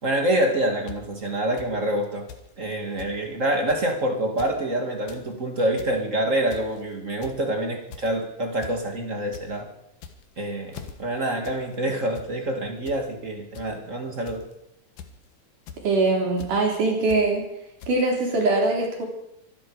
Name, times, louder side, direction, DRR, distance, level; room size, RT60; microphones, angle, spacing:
voice 1, 0.0-2.2 2.6-9.7 10.4-14.4, right 1 dB, 30° right, 3 dB, 2.0 m, -26 dB
sound 1, 0.9-1.0 1.6-1.7 2.3-2.5 2.7-2.8 3.0-3.1 3.7-3.9 4.3-4.5 4.9-5.2 5.6-5.9 6.5-6.8 7.2-7.5 7.9-8.2 8.6-8.8 9.1-9.4 9.9-10.3 10.7-10.9 11.4-11.6 11.9-12.3 12.9-13.0 13.5-13.7 14.3-14.5 15.0-15.2 15.7-15.8 16.4-16.5 17.1-17.2 17.8-17.9, left 7 dB, 85° left, 3.0 m, -41 dB
voice 2, 15.8-17.5 17.9-19.0, right 3 dB, 75° right, -1 dB, 5.1 m, -22 dB
25.0 x 11.0 x 4.9 m, 0.81 s
omnidirectional pair, 3.7 m